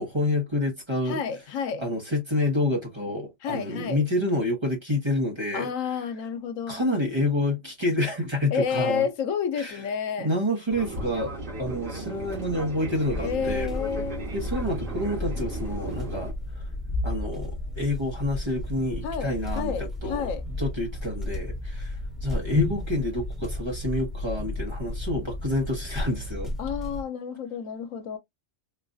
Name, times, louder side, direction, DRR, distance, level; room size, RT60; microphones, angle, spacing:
voice 1, 0.0-1.2 1.8-5.7 6.7-9.0 9.6-9.7 10.2-11.3 11.6-13.7 14.3-16.6 17.0-22.0 22.2-26.5, left 1 dB, 25° right, 0.9 m, -28 dB
voice 2, 1.0-1.8 3.4-4.0 5.5-6.8 8.5-10.3 13.2-14.3 19.0-20.4 26.6-28.2, left 7 dB, 90° left, 1.1 m, -30 dB
Fixed-wing aircraft airplane, 10.7-16.3, right 2 dB, 75° right, 2.2 m, -36 dB
sound 1, 13.1-27.0, left 2 dB, ahead, 1.1 m, -33 dB
4.2 x 2.3 x 2.5 m
omnidirectional pair, 1.3 m